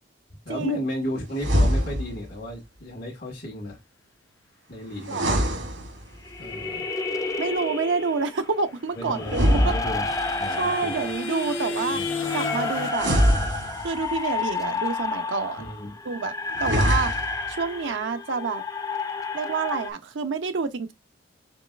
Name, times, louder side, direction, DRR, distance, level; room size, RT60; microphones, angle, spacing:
voice 1, 0.4-3.8 4.7-5.4 6.4-6.9 8.9-11.1 11.9-12.1 15.6-16.0 16.6-16.8, equal, 55° left, 1.3 m, -34 dB
sound 1, 1.3-2.3 5.0-6.3 9.2-10.4 12.9-14.2 16.5-17.5, equal, 90° right, 2.1 m, -24 dB
voice 2, 5.1-5.4 7.4-9.7 10.6-12.0 12.3-13.1 13.8-15.6 16.0-16.3 16.6-17.1 17.6-18.6 19.3-20.9, right 4 dB, 70° right, 0.5 m, -28 dB
sound 2, 6.3-8.4 9.0-19.9, left 3 dB, 20° left, 0.4 m, -31 dB
sound 3, 9.0-12.9, left 3 dB, 80° left, 0.7 m, -32 dB
5.2 x 3.9 x 2.3 m
head